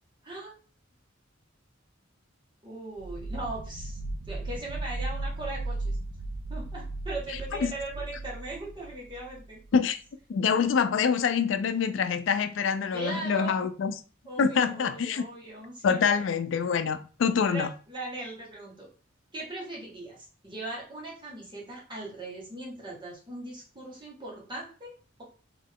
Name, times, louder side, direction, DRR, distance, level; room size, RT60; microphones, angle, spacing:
voice 1, 0.2-0.5 2.6-4.0 4.3-6.0 6.5-9.6 12.9-13.6 14.2-16.0 17.4-18.9 19.3-25.2, right 2 dB, 25° right, 1.7 m, -39 dB
sound 1, 3.0-9.7, right 2 dB, 55° right, 0.4 m, -36 dB
voice 2, 10.3-13.9 14.4-15.2 15.8-17.7, left 6 dB, 65° left, 0.4 m, -25 dB
3.8 x 3.1 x 3.7 m
head